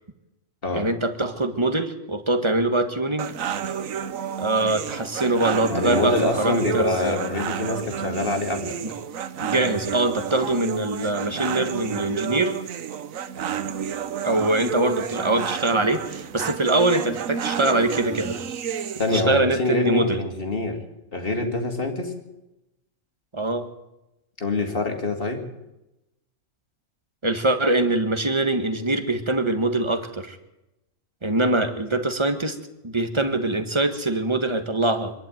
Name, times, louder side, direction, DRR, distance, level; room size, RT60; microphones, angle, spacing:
voice 1, 0.7-3.3 4.4-7.2 8.8-8.9 9.4-12.5 14.2-18.4 19.1-20.2 23.3-23.7 27.2-30.4 31.2-32.6 32.8-35.1, right 2 dB, 20° right, 8 dB, 1.6 m, -23 dB
sound 1, 3.2-19.2, right 8 dB, 65° right, 1.3 m, -31 dB
voice 2, 5.7-8.8 19.0-20.8 21.1-22.1 24.4-25.4, left 2 dB, 40° left, 5 dB, 2.7 m, -25 dB
24.5 x 11.5 x 9.2 m, 0.94 s
omnidirectional pair, 1.6 m